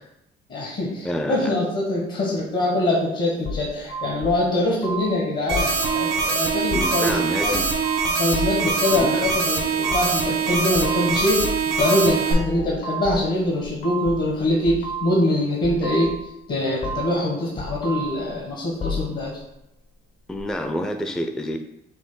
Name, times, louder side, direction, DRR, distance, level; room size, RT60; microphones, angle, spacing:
voice 1, 0.5-7.6 8.1-11.5 11.8-16.2 16.5-19.4, left 1 dB, 55° left, -4 dB, 1.3 m, -23 dB
voice 2, 1.0-1.6 6.7-7.7 8.9-9.3 20.3-21.6, equal, 5° left, 5 dB, 0.4 m, -28 dB
sound 1, 3.4-4.5 5.5-6.2 6.5-7.1 7.5-7.9 8.3-8.7 9.9-10.2 10.7-11.0 11.4-11.7 12.3-13.8 14.1-15.0 15.6-16.5 16.8-17.1 17.6-18.4 18.8-19.4 20.4-20.5, left 5 dB, 35° left, 0.7 m, -33 dB
sound 2, 3.9-4.4 4.8-5.4 5.8-6.4 6.8-7.4 7.8-8.4 8.8-9.4 9.8-10.4 10.8-11.4 11.8-12.4 12.8-13.4 13.8-14.4 14.8-15.4 15.8-16.4 16.8-17.4 17.8-18.4, right 7 dB, 85° left, 1.2 m, -33 dB
sound 3, 5.5-12.3, right 5 dB, 90° right, 0.9 m, -23 dB
6.1 x 2.2 x 3.7 m, 0.83 s
cardioid pair, 90°, 20 cm